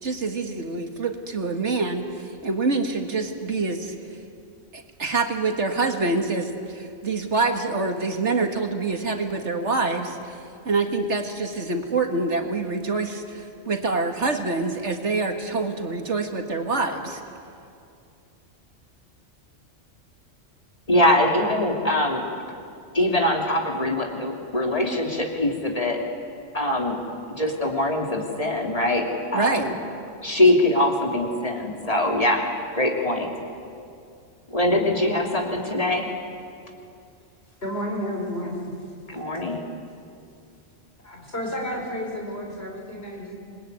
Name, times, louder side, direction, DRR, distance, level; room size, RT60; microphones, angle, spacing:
voice 1, 0.0-4.0 4.7-17.2 29.3-29.8, right 3 dB, 65° right, 4 dB, 2.1 m, -26 dB
voice 2, 20.9-22.2 22.9-26.0 26.5-27.0 27.4-29.1 29.3-29.7 30.2-32.5 32.7-33.3 34.5-36.1 39.1-39.6, left 1 dB, 30° left, 1 dB, 3.0 m, -22 dB
voice 3, 37.6-38.7 41.0-43.4, equal, 50° left, 0 dB, 5.2 m, -31 dB
27.5 x 20.5 x 9.6 m, 2.5 s
omnidirectional pair, 1.3 m